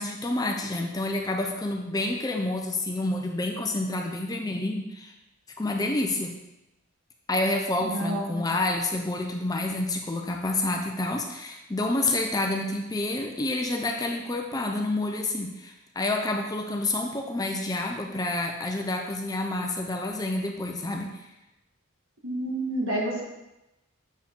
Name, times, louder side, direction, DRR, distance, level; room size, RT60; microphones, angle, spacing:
voice 1, 0.0-5.1 5.6-6.3 7.3-21.1, left 2 dB, 15° left, 2 dB, 0.5 m, -28 dB
voice 2, 7.8-8.4 22.2-23.2, right 1 dB, 70° right, -2 dB, 1.6 m, -29 dB
7.2 x 4.5 x 3.7 m, 0.94 s
head